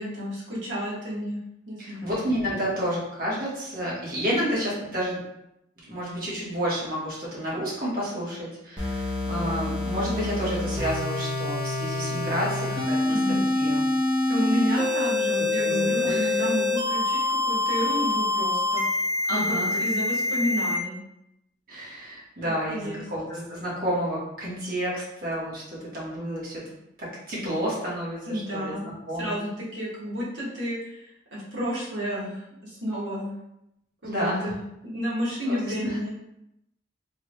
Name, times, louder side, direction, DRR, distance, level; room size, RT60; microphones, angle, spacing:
voice 1, 0.0-1.4 1.7-2.2 13.1-13.5 14.3-18.8 19.3-21.0 22.4-23.0 28.3-28.9 29.2-33.3 34.0-34.6 34.8-36.1, equal, 85° right, -6 dB, 1.2 m, -31 dB
voice 2, 1.8-5.2 5.9-13.8 14.8-14.9 15.6-16.2 19.3-19.8 21.7-26.6 27.0-29.4 34.0-34.5 35.5-35.6 35.8-36.0, equal, 50° right, -6 dB, 1.2 m, -30 dB
sound 1, 8.8-20.8, left 2 dB, 25° right, 0.7 m, -26 dB
3.4 x 2.3 x 3.2 m, 0.83 s
head